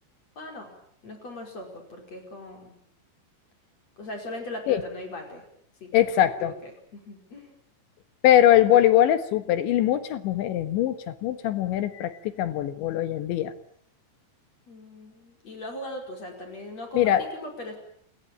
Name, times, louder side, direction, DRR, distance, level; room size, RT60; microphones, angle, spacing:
voice 1, 0.4-0.7 1.0-2.7 4.0-5.4 5.8-6.0 6.4-7.5 14.7-17.8, left 1 dB, 35° left, 3 dB, 6.0 m, -39 dB
voice 2, 5.9-6.5 8.2-12.1 12.4-13.5 17.0-17.2, left 12 dB, 75° left, 11 dB, 3.8 m, -21 dB
29.5 x 22.0 x 8.8 m, 0.64 s
omnidirectional pair, 5.3 m